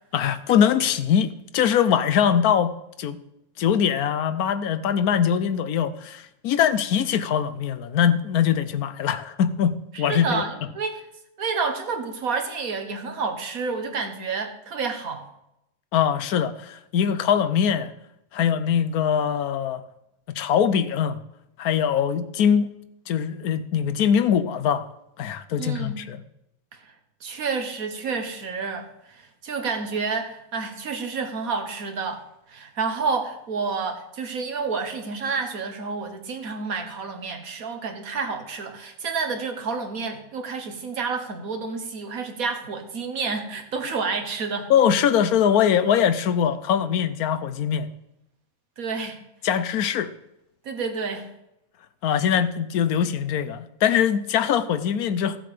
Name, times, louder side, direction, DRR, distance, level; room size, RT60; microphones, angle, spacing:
voice 1, 0.1-3.2 3.6-10.4 15.9-17.9 18.3-19.8 20.3-21.2 21.6-22.7 23.1-24.9 25.2-26.2 44.7-47.9 49.4-50.1 52.0-55.4, left 8 dB, 80° left, 1.2 m, -22 dB
voice 2, 9.9-11.1 11.4-15.3 25.6-26.0 26.8-26.9 27.2-44.7 48.8-49.2 50.6-51.3, right 4 dB, 70° right, 1.8 m, -29 dB
15.0 x 7.7 x 5.0 m
omnidirectional pair, 1.6 m